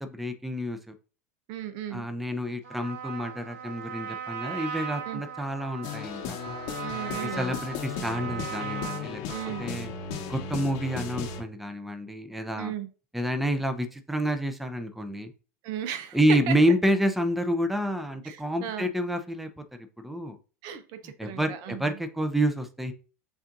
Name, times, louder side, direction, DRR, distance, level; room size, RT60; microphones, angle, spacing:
voice 1, 0.0-0.9 1.9-6.4 7.2-9.2 9.6-9.9 10.3-12.7 13.1-15.3 16.1-19.5 20.0-20.4 21.2-22.9, equal, ahead, 0.5 m, -28 dB
voice 2, 1.5-2.1 5.1-5.2 6.8-7.4 9.3-9.6 12.6-12.9 15.6-16.2 16.5-16.6 18.2-18.9 20.6-22.0, right 10 dB, 55° right, 0.6 m, -36 dB
Trumpet, 2.6-9.8, right 7 dB, 75° right, 1.3 m, -38 dB
sound 1, 5.8-11.4, left 5 dB, 60° left, 0.9 m, -36 dB
7.0 x 2.6 x 2.6 m
hypercardioid pair, 100°, 8 cm